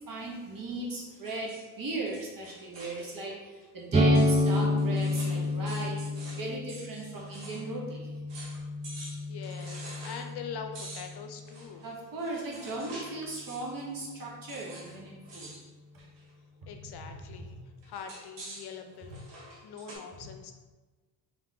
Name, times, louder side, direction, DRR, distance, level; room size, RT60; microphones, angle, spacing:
voice 1, 0.1-6.0 6.3-8.1 11.8-15.5, right 2 dB, 45° right, -2 dB, 1.5 m, -37 dB
sound 1, 1.1-3.3 3.6-3.7 4.1-7.7 7.9-8.0 8.3-8.6 8.8-10.3 10.7-13.2 13.5-13.8 14.5-15.0 15.2-15.6 16.0-16.3 17.8-20.0, right 2 dB, 70° right, 1.4 m, -47 dB
sound 2, 3.9-11.5, left 1 dB, 15° right, 0.5 m, -29 dB
voice 2, 9.0-11.8 16.7-17.6 17.9-19.2 19.6-20.5, left 6 dB, 60° left, 6 dB, 0.6 m, -43 dB
3.6 x 3.5 x 3.5 m, 1.3 s
supercardioid pair, 55°, 45 cm